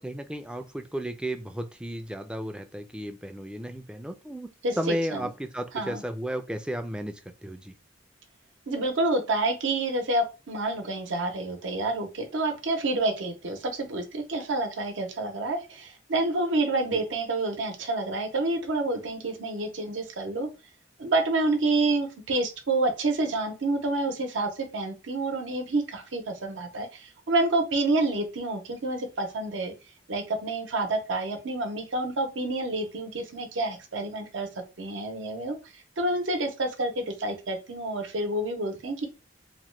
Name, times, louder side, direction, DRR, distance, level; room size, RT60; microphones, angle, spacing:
voice 1, 0.0-4.5 4.8-7.7 16.9-17.0, equal, 5° right, 7 dB, 0.3 m, -34 dB
voice 2, 4.6-5.3 5.7-6.0 8.7-20.5 21.0-29.7 30.1-34.5 34.8-35.6 36.0-39.1, right 2 dB, 85° right, 5 dB, 0.7 m, -28 dB
2.9 x 2.1 x 3.1 m, 0.29 s
head